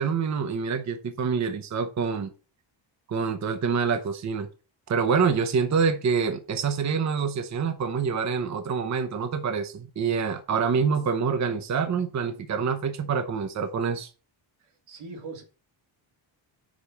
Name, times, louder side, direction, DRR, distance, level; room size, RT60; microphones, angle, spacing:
voice 1, 0.0-2.3 3.1-4.5 4.9-14.1, right 6 dB, 35° right, 0.7 m, -26 dB
voice 2, 14.6-15.4, right 3 dB, 85° right, 1.9 m, -41 dB
5.3 x 5.1 x 5.6 m
cardioid pair, 125°, 47 cm